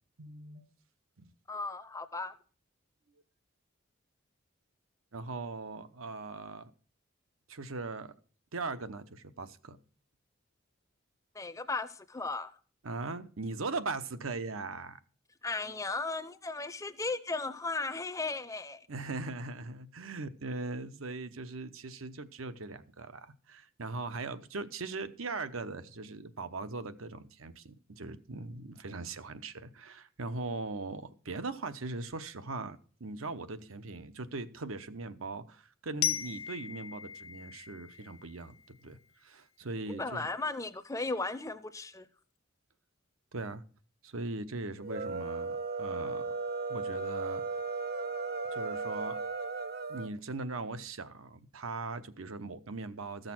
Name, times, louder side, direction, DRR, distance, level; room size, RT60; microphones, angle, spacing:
voice 1, 0.2-0.7 1.2-1.3 5.1-6.7 7.5-8.1 8.5-9.8 12.8-15.0 18.9-40.3 43.3-43.6 44.0-46.4 46.7-47.4 48.5-49.2 49.9-53.3, right 3 dB, 80° right, 11 dB, 0.9 m, -40 dB
voice 2, 1.5-2.4 11.3-12.5 15.4-18.9 39.9-42.1, left 3 dB, 15° left, 14 dB, 0.6 m, -36 dB
Glockenspiel, 36.0-38.9, left 11 dB, 80° left, 0.6 m, -37 dB
sound 1, 44.8-50.1, right 3 dB, 45° right, 0.7 m, -36 dB
14.0 x 6.6 x 6.0 m, 0.41 s
head